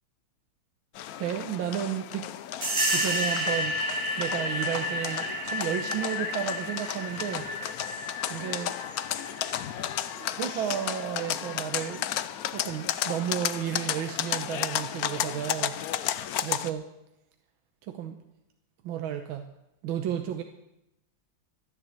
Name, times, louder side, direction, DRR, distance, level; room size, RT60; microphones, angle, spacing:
sound 1, 0.9-16.7, left 11 dB, 70° left, 0.9 m, -33 dB
voice 1, 1.2-2.3 2.9-3.8 4.2-7.5 8.3-8.7 10.1-12.1 12.5-15.8 16.4-16.9 17.8-18.2 18.8-19.5 19.8-20.4, right 10 dB, 85° right, 6 dB, 1.7 m, -32 dB
sound 2, 2.6-10.9, equal, 30° right, 1.8 m, -32 dB
13.5 x 10.5 x 7.8 m, 0.85 s
omnidirectional pair, 2.2 m